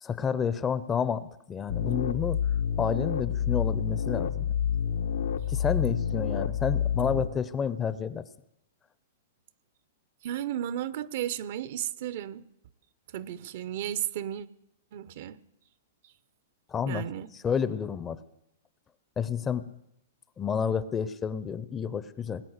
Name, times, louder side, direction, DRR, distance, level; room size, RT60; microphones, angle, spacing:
voice 1, 0.0-2.4 2.8-4.5 5.5-8.2 16.7-17.0 17.4-18.2 19.2-19.7 20.4-22.4, left 7 dB, 15° left, 0.6 m, -30 dB
sound 1, 1.7-7.3, left 8 dB, 80° left, 1.0 m, -28 dB
voice 2, 10.2-12.4 13.1-14.5 14.9-15.4 16.9-17.3, right 11 dB, 55° right, 0.7 m, -34 dB
19.5 x 8.6 x 8.1 m
hypercardioid pair, 150°, 0 cm